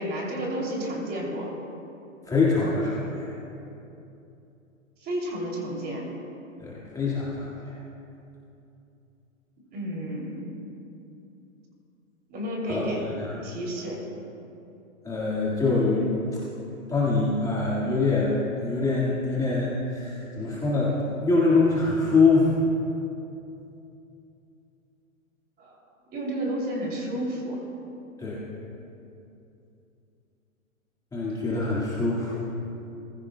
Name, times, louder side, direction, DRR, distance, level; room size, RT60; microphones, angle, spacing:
voice 1, 0.0-1.5 5.0-6.1 9.7-10.4 12.3-13.0 13.4-14.0 25.6-25.8 26.1-27.6, equal, 25° right, -2 dB, 2.9 m, -31 dB
voice 2, 2.3-3.3 6.6-7.8 12.7-12.8 13.1-13.3 15.0-16.4 16.9-18.4 18.6-22.5 28.2-28.4 31.1-32.4, left 3 dB, 10° left, -8 dB, 1.8 m, -24 dB
20.5 x 15.5 x 2.2 m, 2.8 s
hypercardioid pair, 125°, 41 cm